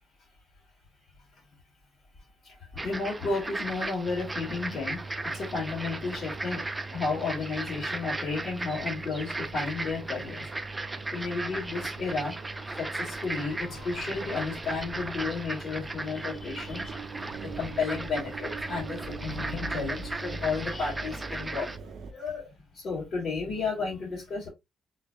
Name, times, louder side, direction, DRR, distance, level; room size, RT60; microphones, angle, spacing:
voice 1, 2.4-5.0 5.3-6.6 6.9-10.4 11.1-12.4 12.7-17.0 17.4-21.7 22.1-22.5 22.7-24.5, left 4 dB, 55° left, 2.5 m, -32 dB
sound 1, 2.8-21.8, right 2 dB, 15° right, 0.5 m, -37 dB
Engine, 4.1-22.1, right 4 dB, 60° right, 0.5 m, -42 dB
4.2 x 3.8 x 2.4 m
cardioid pair, 90°, 0 cm